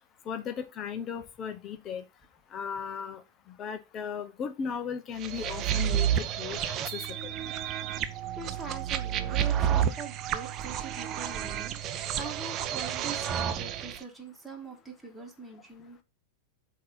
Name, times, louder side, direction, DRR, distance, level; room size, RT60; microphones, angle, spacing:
voice 1, 0.3-2.0 2.5-3.2 3.6-6.1 6.4-7.3, left 7 dB, 30° left, 0.7 m, -36 dB
sound 1, 5.2-14.0, right 10 dB, 35° right, 0.7 m, -30 dB
voice 2, 8.0-11.8 12.2-16.0, right 4 dB, ahead, 1.7 m, -43 dB
7.6 x 2.8 x 5.5 m
figure-of-eight pair, 90°, 0 cm